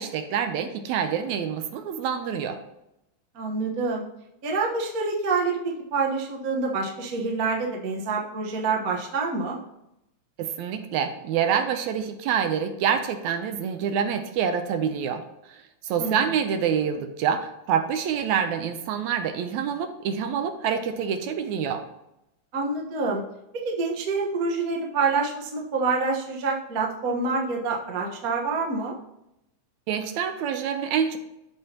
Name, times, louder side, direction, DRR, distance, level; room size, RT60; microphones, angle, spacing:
voice 1, 0.0-2.6 10.4-15.2 15.5-21.8 29.9-31.2, right 7 dB, 80° right, 8 dB, 1.9 m, -26 dB
voice 2, 3.3-4.0 4.4-9.6 16.0-16.2 22.5-23.2 23.5-29.0, right 4 dB, 55° right, -1 dB, 1.0 m, -27 dB
14.0 x 5.4 x 2.9 m, 0.86 s
omnidirectional pair, 3.5 m